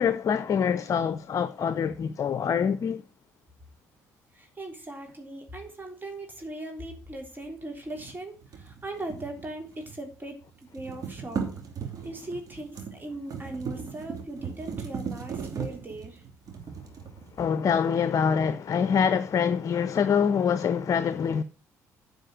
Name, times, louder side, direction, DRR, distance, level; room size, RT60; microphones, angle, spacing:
voice 1, 0.0-3.0 17.4-21.4, left 7 dB, 50° left, 0.6 m, -25 dB
voice 2, 4.3-10.4 10.7-11.5 12.0-16.2, right 1 dB, 25° right, 3.5 m, -39 dB
sound 1, 7.9-10.1 10.4-17.7, right 6 dB, 50° right, 2.8 m, -38 dB
9.8 x 5.1 x 7.7 m
hypercardioid pair, 50°, 8 cm